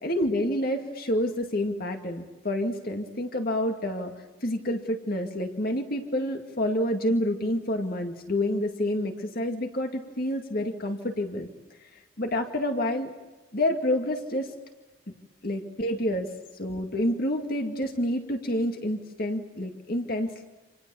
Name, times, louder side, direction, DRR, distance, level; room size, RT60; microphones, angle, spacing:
voice 1, 0.0-4.1 4.4-11.5 11.8-13.1 13.5-14.5 15.4-16.3 16.6-20.3, left 1 dB, 50° left, 4 dB, 2.2 m, -28 dB
29.0 x 28.0 x 7.1 m, 1.2 s
head